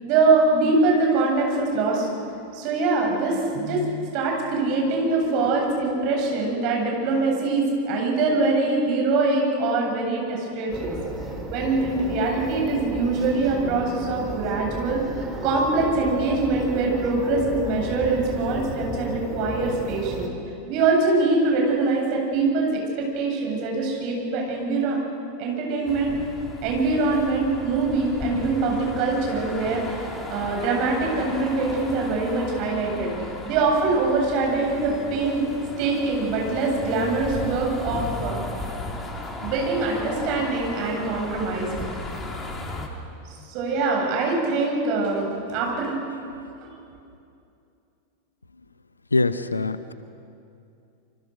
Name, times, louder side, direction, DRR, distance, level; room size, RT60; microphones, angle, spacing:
voice 1, 0.0-2.1 2.5-11.0 11.5-15.0 15.4-20.3 20.7-22.8 23.1-25.0 25.4-26.1 26.6-35.4 35.8-38.4 39.4-41.7 43.5-45.9, right 3 dB, 45° right, 0 dB, 8.0 m, -23 dB
sound 1, 10.7-20.3, right 1 dB, 10° right, 3.9 m, -34 dB
sound 2, 25.9-42.9, left 2 dB, 20° left, 3.3 m, -35 dB
voice 2, 49.1-49.9, left 2 dB, 80° left, 13 dB, 1.0 m, -23 dB
27.5 x 25.5 x 6.6 m, 2.6 s
figure-of-eight pair, 90°, 0 cm